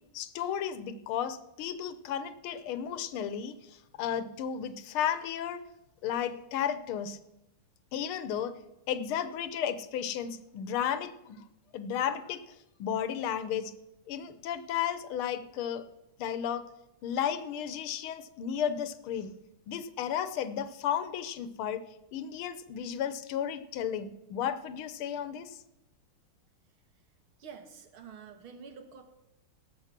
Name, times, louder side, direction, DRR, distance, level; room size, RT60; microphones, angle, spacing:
voice 1, 0.1-5.6 6.0-7.2 7.9-8.6 8.9-11.4 11.7-12.4 12.8-13.7 14.1-15.8 16.2-16.6 17.0-19.3 19.7-21.8 22.1-25.6, left 9 dB, 80° left, 12 dB, 1.6 m, -33 dB
voice 2, 27.4-29.0, right 6 dB, 75° right, 6 dB, 2.2 m, -48 dB
17.5 x 7.2 x 5.9 m, 0.92 s
omnidirectional pair, 2.4 m